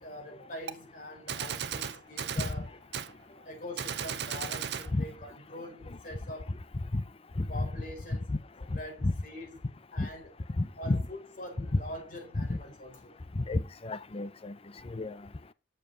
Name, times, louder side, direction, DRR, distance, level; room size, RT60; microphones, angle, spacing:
voice 1, 0.0-2.7 3.3-6.5 7.5-8.4 8.7-10.3 10.8-13.1, left 1 dB, 50° left, 4.1 m, -44 dB
Gunshot gunfire, 0.7-0.8 1.3-2.6 2.9-3.1 3.8-4.9, right 8 dB, 65° right, 0.7 m, -35 dB
voice 2, 7.4-7.7 8.3-8.4 9.0-9.1 10.0-10.1 10.6-11.0 12.4-12.6 13.5-14.5 14.9-15.1, left 2 dB, 35° left, 0.6 m, -30 dB
7.3 x 6.8 x 3.9 m
head